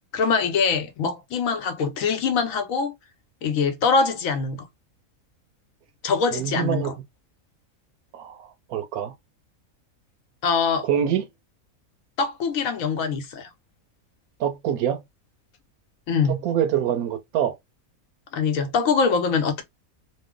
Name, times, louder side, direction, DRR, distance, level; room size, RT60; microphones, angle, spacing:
voice 1, 0.1-2.9 3.4-4.6 6.0-6.9 10.4-10.9 12.2-13.5 16.1-16.4 18.3-19.6, left 5 dB, 75° left, 1.1 m, -23 dB
voice 2, 6.3-6.9 8.1-9.1 10.8-11.2 14.4-15.0 16.3-17.5, right 9 dB, 90° right, 1.1 m, -25 dB
3.0 x 2.0 x 3.6 m
omnidirectional pair, 1.5 m